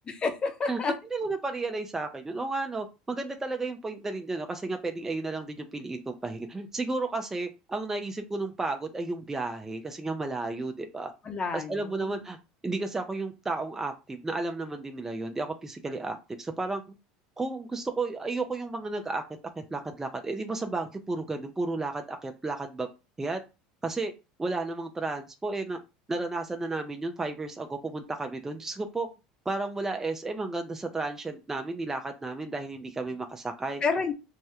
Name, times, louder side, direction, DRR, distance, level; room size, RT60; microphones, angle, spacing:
voice 1, 0.1-0.9 11.2-12.2 33.8-34.1, left 4 dB, 30° left, 7 dB, 0.7 m, -30 dB
voice 2, 1.1-11.1 11.5-12.4 12.6-16.8 17.4-19.2 19.6-22.9 23.2-23.4 23.8-24.1 24.4-25.8 26.1-29.1 29.5-33.8, right 3 dB, 15° right, 5 dB, 0.5 m, -33 dB
3.4 x 2.1 x 2.8 m, 0.28 s
supercardioid pair, 100°, 3 cm